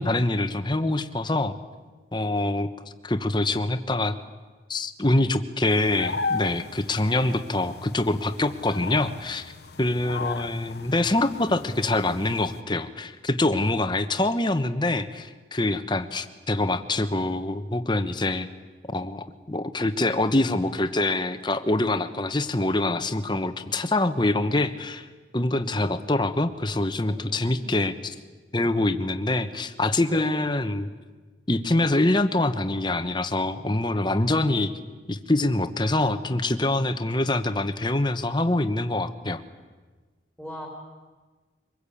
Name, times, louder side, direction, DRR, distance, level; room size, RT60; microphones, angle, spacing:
voice 1, 0.0-1.5 2.1-2.7 3.0-4.1 4.7-9.5 9.8-18.5 18.9-25.1 25.3-28.1 28.5-30.9 31.5-34.7 35.1-39.4, left 2 dB, 25° left, 10 dB, 1.1 m, -25 dB
sound 1, 5.7-12.6, left 4 dB, 65° left, 1.2 m, -36 dB
voice 2, 27.1-27.9 30.1-30.5 40.4-40.7, equal, ahead, 1 dB, 2.9 m, -40 dB
25.0 x 20.5 x 8.6 m, 1.4 s
head